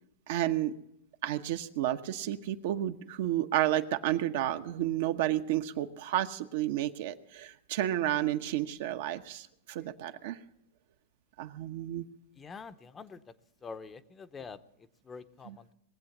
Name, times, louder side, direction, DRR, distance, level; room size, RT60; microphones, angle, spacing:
voice 1, 0.3-0.7 1.2-10.4 11.4-12.0 15.4-15.6, right 13 dB, 60° right, 8 dB, 0.9 m, -31 dB
voice 2, 12.4-13.2 13.6-14.6 15.0-15.6, left 5 dB, 20° left, 11 dB, 0.7 m, -45 dB
20.5 x 7.9 x 7.2 m, 0.79 s
hypercardioid pair, 135°, 0 cm